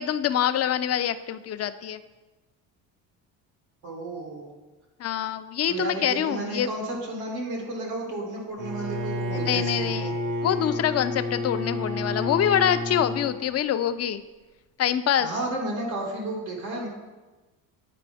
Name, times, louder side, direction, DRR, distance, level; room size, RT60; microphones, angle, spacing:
voice 1, 0.0-2.0 5.0-6.7 9.3-10.1 10.4-14.2 14.8-15.3, left 10 dB, 35° left, 11 dB, 0.4 m, -25 dB
voice 2, 3.8-4.5 5.7-10.1 15.2-16.9, right 2 dB, 85° right, -1 dB, 2.2 m, -32 dB
Bowed string instrument, 8.6-13.4, left 1 dB, 55° right, 1.4 m, -30 dB
9.2 x 4.4 x 3.4 m, 1.2 s
supercardioid pair, 70°, 49 cm